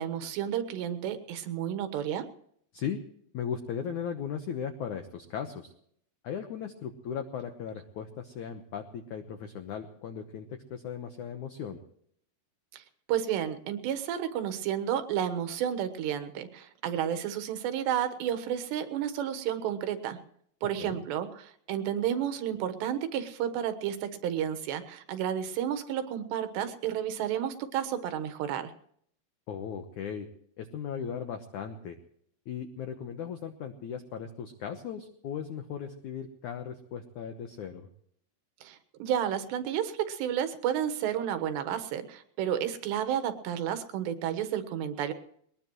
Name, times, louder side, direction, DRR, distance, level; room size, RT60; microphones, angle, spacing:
voice 1, 0.0-2.3 12.7-20.2 20.6-28.7 38.6-45.1, right 9 dB, 75° right, 10 dB, 3.3 m, -31 dB
voice 2, 3.3-5.7 6.2-11.8 20.8-21.0 29.5-30.3 30.6-32.0 32.4-37.9, left 7 dB, 90° left, 6 dB, 1.7 m, -37 dB
21.0 x 20.5 x 3.1 m, 0.66 s
omnidirectional pair, 5.3 m